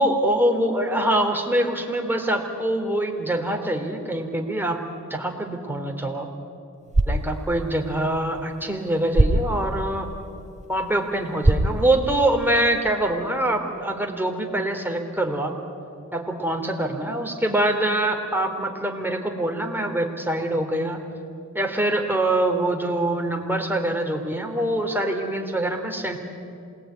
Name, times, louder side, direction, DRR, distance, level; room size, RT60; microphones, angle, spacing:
voice 1, 0.0-4.8 5.1-6.3 7.1-10.1 10.7-15.5 16.1-21.0 21.5-26.2, right 1 dB, 5° right, 3 dB, 3.7 m, -24 dB
sound 1, 6.7-12.8, right 1 dB, 25° right, 2.5 m, -26 dB
27.5 x 19.5 x 9.5 m, 2.5 s
cardioid pair, 65°, 30 cm